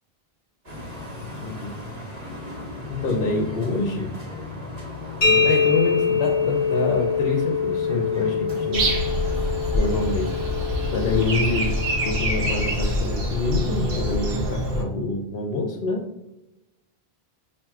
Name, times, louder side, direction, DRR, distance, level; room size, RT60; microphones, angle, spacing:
sound 1, 0.6-11.8, left 2 dB, 40° right, 1.2 m, -37 dB
voice 1, 1.2-1.8 2.9-4.2 5.2-8.9 9.7-10.4 10.9-11.8 12.0-16.0, left 3 dB, 70° left, 1 dB, 0.8 m, -26 dB
sound 2, 5.2-12.8, left 5 dB, 45° left, 1.2 m, -25 dB
Breathing, 8.7-14.8, equal, 70° right, 1.0 m, -25 dB
5.8 x 2.5 x 2.3 m, 0.91 s
omnidirectional pair, 1.0 m